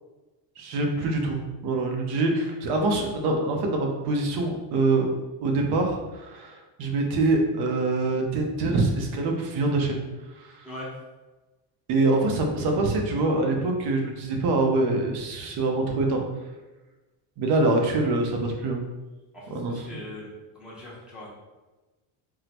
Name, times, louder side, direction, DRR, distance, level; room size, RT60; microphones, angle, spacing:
voice 1, 0.6-5.1 5.4-10.0 11.9-16.2 17.4-18.8 19.5-19.9, right 2 dB, 55° right, 2 dB, 0.7 m, -24 dB
voice 2, 19.3-20.3 20.5-21.3, left 1 dB, ahead, -7 dB, 0.7 m, -40 dB
3.7 x 2.0 x 2.8 m, 1.1 s
cardioid pair, 135°, 47 cm